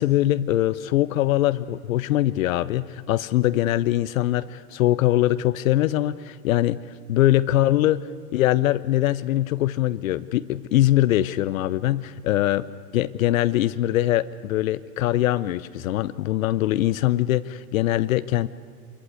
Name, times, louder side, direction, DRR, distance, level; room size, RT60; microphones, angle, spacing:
voice 1, 0.0-6.8 7.1-12.7 12.9-18.5, left 14 dB, 65° left, 14 dB, 0.8 m, -22 dB
26.0 x 15.0 x 9.6 m, 2.1 s
hypercardioid pair, 120°, 43 cm